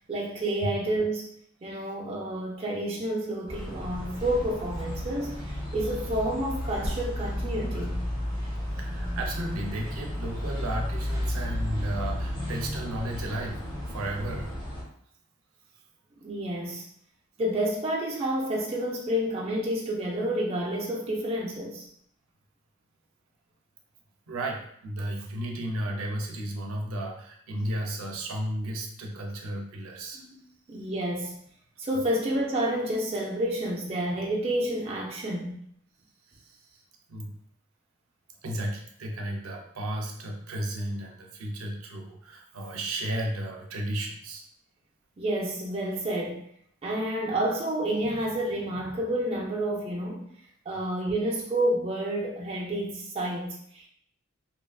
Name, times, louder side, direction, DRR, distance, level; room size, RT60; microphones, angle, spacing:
voice 1, 0.1-1.3 1.6-8.0 16.2-16.8 17.4-21.9 30.1-30.4 30.7-31.3 31.8-35.6 45.2-46.4 46.8-50.3 50.7-53.9, right 1 dB, 30° right, 0.3 m, -29 dB
sound 1, 3.5-14.8, left 1 dB, 20° left, 1.0 m, -33 dB
voice 2, 8.8-14.6 24.3-30.2 36.3-36.8 37.1-37.4 38.4-44.4 50.7-50.8, right 1 dB, 80° right, 0.5 m, -34 dB
2.8 x 2.4 x 2.2 m
head